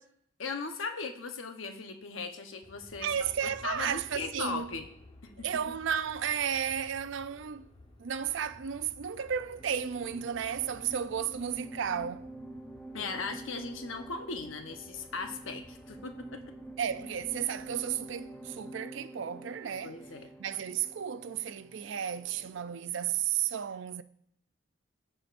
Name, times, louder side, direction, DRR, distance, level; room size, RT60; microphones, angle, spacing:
voice 1, 0.4-4.9 5.4-5.5 12.9-16.4 19.8-20.3, left 4 dB, 80° left, 1.0 m, -38 dB
Aircraft, 2.6-18.8, left 1 dB, 30° left, 1.0 m, -56 dB
voice 2, 3.0-4.7 5.4-7.6 8.0-12.3 16.8-19.9 20.4-24.0, right 8 dB, 65° right, 0.4 m, -33 dB
sound 1, 9.6-22.9, right 1 dB, 5° left, 0.6 m, -47 dB
15.0 x 5.0 x 2.6 m
head